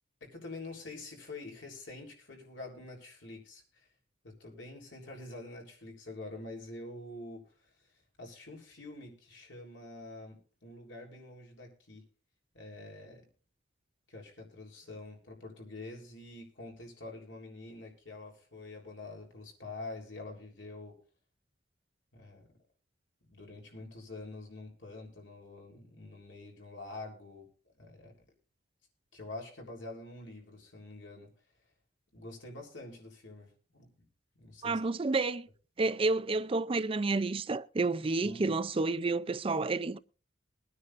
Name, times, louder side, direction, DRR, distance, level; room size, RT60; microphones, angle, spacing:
voice 1, 0.2-3.9 4.2-7.4 8.2-12.0 12.5-13.2 14.1-21.0 22.1-22.5 23.3-27.5 27.8-28.1 29.1-31.3 32.1-34.1 34.4-34.8 38.2-38.5, left 2 dB, 65° left, 3.7 m, -46 dB
voice 2, 34.6-35.5 35.8-40.0, right 3 dB, 30° right, 0.5 m, -30 dB
22.5 x 9.7 x 2.5 m
head